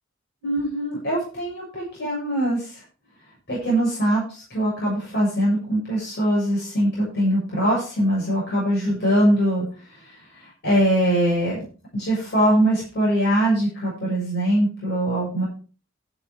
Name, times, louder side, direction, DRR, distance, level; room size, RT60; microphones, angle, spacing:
voice 1, 0.4-2.8 3.5-11.6 11.9-15.5, right 1 dB, 55° left, -5 dB, 6.8 m, -22 dB
12.0 x 7.4 x 5.0 m, 0.38 s
head